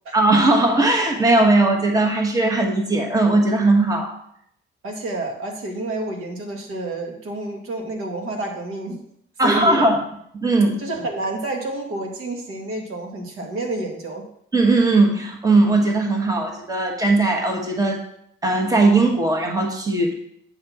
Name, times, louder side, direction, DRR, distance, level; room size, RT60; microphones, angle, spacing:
voice 1, 0.1-4.1 9.4-10.0 10.3-10.8 14.5-18.0 18.4-20.1, right 2 dB, 15° right, 2 dB, 1.3 m, -18 dB
voice 2, 4.8-9.0 9.4-9.9 10.8-14.3, right 2 dB, 85° right, 1 dB, 1.9 m, -29 dB
8.3 x 4.2 x 7.1 m, 0.70 s
cardioid pair, 145°, 21 cm